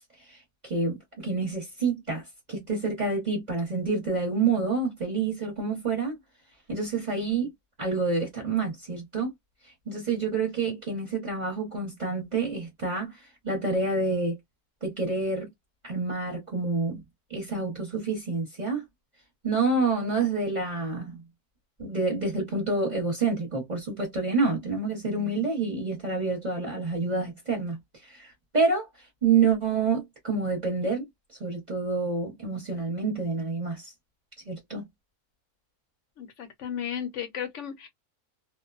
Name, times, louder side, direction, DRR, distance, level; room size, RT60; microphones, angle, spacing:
voice 1, 0.6-2.2 2.5-6.1 6.7-7.5 7.8-9.3 9.9-13.1 13.4-14.4 14.8-15.5 15.8-17.0 17.3-18.8 19.4-21.2 21.8-27.8 28.1-28.9 29.2-31.0 31.4-33.9 34.5-34.8, right 4 dB, 35° right, 0.9 m, -28 dB
voice 2, 36.2-37.9, left 8 dB, 65° left, 0.8 m, -34 dB
2.5 x 2.1 x 2.3 m
omnidirectional pair, 1.6 m